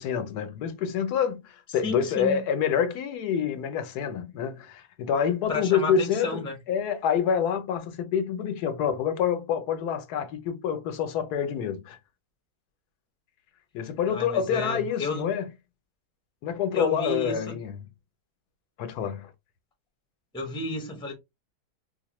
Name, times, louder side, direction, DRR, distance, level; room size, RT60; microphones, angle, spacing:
voice 1, 0.0-6.4 6.7-12.0 13.7-15.5 16.4-17.7 18.8-19.3, left 8 dB, 80° left, 1.2 m, -27 dB
voice 2, 1.8-2.4 5.5-6.5 14.1-15.3 16.7-17.6 20.3-21.1, left 2 dB, 5° left, 0.5 m, -32 dB
4.5 x 2.1 x 3.0 m
omnidirectional pair, 1.6 m